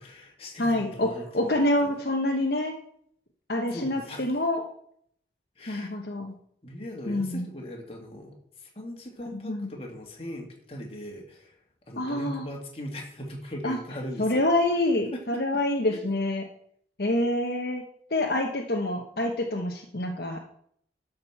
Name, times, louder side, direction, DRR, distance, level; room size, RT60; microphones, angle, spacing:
voice 1, 0.0-1.9 3.7-4.4 5.6-5.9 6.6-11.6 11.9-14.5 15.1-15.4 15.9-16.0, left 1 dB, 30° left, 1 dB, 2.1 m, -39 dB
voice 2, 0.6-2.7 3.5-4.6 5.7-6.3 7.1-7.5 9.3-9.7 12.0-12.4 13.6-13.8 14.2-16.4 17.0-17.8 18.1-20.4, left 1 dB, 55° left, 1 dB, 1.1 m, -27 dB
11.5 x 5.3 x 7.1 m, 0.66 s
head